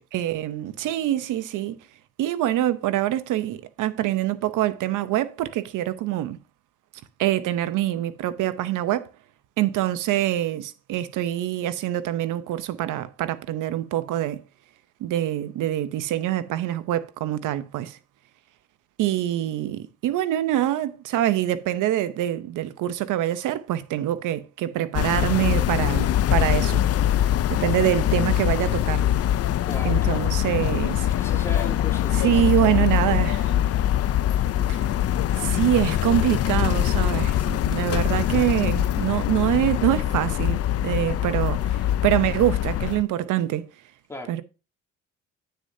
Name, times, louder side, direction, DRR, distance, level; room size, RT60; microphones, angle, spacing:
voice 1, 0.1-1.8 2.2-6.4 7.2-9.1 9.6-14.4 15.0-18.0 19.0-26.8 27.5-29.1 29.8-31.1 32.2-33.6 34.7-34.9 35.4-40.6 40.8-43.6 44.3-44.4, right 13 dB, 85° right, 0.7 m, -25 dB
sound 1, 24.9-43.0, left 12 dB, 55° left, 0.5 m, -23 dB
voice 2, 29.7-30.3 31.1-32.9 44.1-44.4, left 2 dB, 10° left, 2.4 m, -37 dB
9.2 x 6.8 x 2.7 m
cardioid pair, 90°, 30 cm